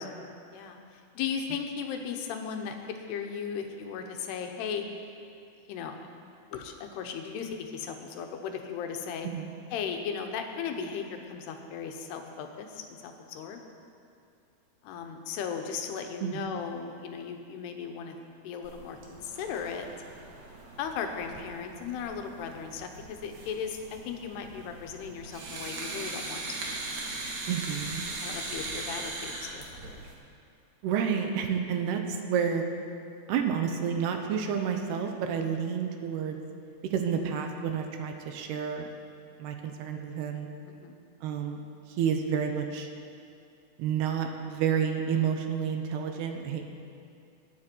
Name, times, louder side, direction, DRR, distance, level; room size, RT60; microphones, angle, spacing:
voice 1, 1.2-4.8 5.7-5.9 6.5-9.3 9.7-13.6 14.8-18.1 18.4-19.9 20.8-26.4 28.2-30.0 40.7-41.0, left 7 dB, 85° left, 4 dB, 3.1 m, -36 dB
sound 1, 18.6-30.1, right 2 dB, 55° right, 2.4 m, -40 dB
voice 2, 27.5-28.1 30.8-32.0 32.3-32.7 33.3-36.4 36.9-38.9 39.4-40.5 41.2-41.6 42.0-42.9 43.8-46.7, right 7 dB, 85° right, 5 dB, 2.9 m, -30 dB
20.0 x 9.8 x 4.5 m, 2.5 s
omnidirectional pair, 4.6 m